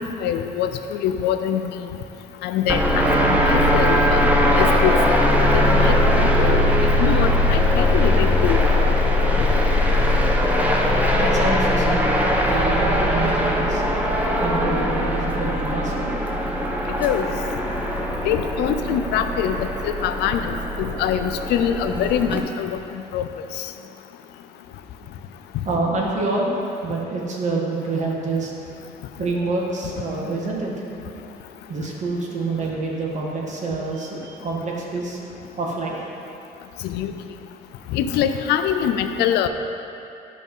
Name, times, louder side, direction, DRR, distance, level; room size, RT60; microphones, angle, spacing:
voice 1, 0.0-2.0 2.4-4.2 4.6-6.6 7.0-8.7 9.4-9.5 17.0-17.3 18.2-23.3 23.6-23.7 36.8-37.1 37.9-39.5, left 9 dB, 80° left, 8 dB, 0.6 m, -24 dB
sound 1, 2.7-22.4, left 1 dB, 10° right, 0.9 m, -20 dB
voice 2, 11.1-13.8 14.4-16.1 25.6-28.5 29.2-30.7 31.0-31.2 31.7-35.2 35.6-36.1, right 3 dB, 45° right, -2 dB, 1.8 m, -27 dB
10.5 x 5.2 x 5.5 m, 2.7 s
cardioid pair, 110°, 17 cm